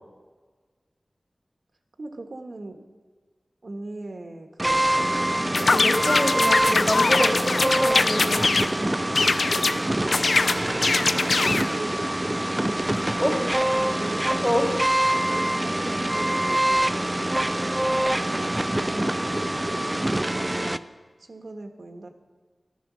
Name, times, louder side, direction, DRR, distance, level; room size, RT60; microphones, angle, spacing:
voice 1, 2.0-2.8 3.6-5.2 6.7-6.9 7.4-7.7 10.7-12.0 13.2-14.3 15.2-17.0 17.8-19.3 20.0-20.9 21.2-22.1, right 2 dB, 70° right, 4 dB, 1.3 m, -39 dB
sound 1, 4.6-20.8, right 1 dB, 20° right, 0.5 m, -25 dB
sound 2, 5.5-8.7 9.1-9.8 10.1-11.7, left 3 dB, 80° left, 0.5 m, -22 dB
voice 2, 5.7-8.4 12.9-13.3 14.4-14.7, equal, 5° left, 1 dB, 2.5 m, -26 dB
14.5 x 12.5 x 6.2 m, 1.4 s
wide cardioid pair, 80°, 0 cm